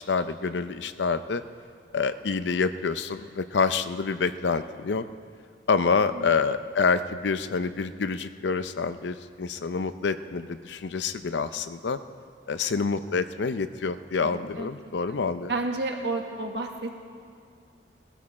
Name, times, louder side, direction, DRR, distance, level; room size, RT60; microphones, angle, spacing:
voice 1, 0.0-1.4 1.9-5.0 5.7-12.0 12.5-15.5, left 5 dB, 80° left, 12 dB, 0.5 m, -27 dB
voice 2, 14.2-14.7 15.5-17.1, right 2 dB, 75° right, 3 dB, 1.4 m, -31 dB
18.5 x 13.0 x 4.2 m, 2.2 s
head